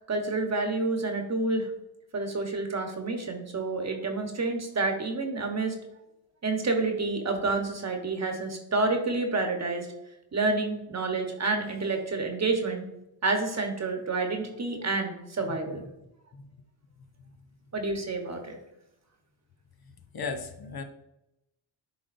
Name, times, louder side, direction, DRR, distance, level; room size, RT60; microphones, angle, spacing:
voice 1, 0.0-1.7 2.1-5.7 6.4-9.9 10.3-12.8 13.2-15.8 17.7-18.6, right 3 dB, 35° right, 3 dB, 1.2 m, -29 dB
voice 2, 20.1-20.8, left 4 dB, 50° left, 5 dB, 0.8 m, -36 dB
10.5 x 3.8 x 2.6 m, 0.88 s
cardioid pair, 95°, 48 cm